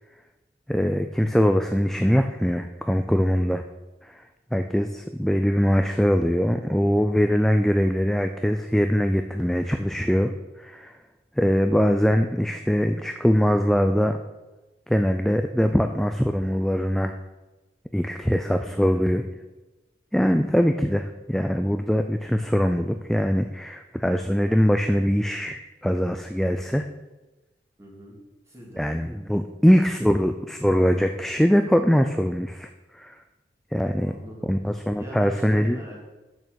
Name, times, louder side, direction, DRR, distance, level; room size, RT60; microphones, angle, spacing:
voice 1, 0.7-3.6 4.0-4.2 4.5-10.3 10.6-10.9 11.4-14.2 14.9-17.1 17.9-19.2 20.1-26.9 28.8-33.2 33.7-34.1 34.4-35.8, equal, ahead, 7 dB, 0.3 m, -22 dB
voice 2, 18.4-19.0 27.8-28.2 28.5-28.8 34.0-34.5 35.0-36.0, right 1 dB, 15° right, -4 dB, 2.6 m, -42 dB
8.6 x 6.7 x 6.3 m, 1.1 s
head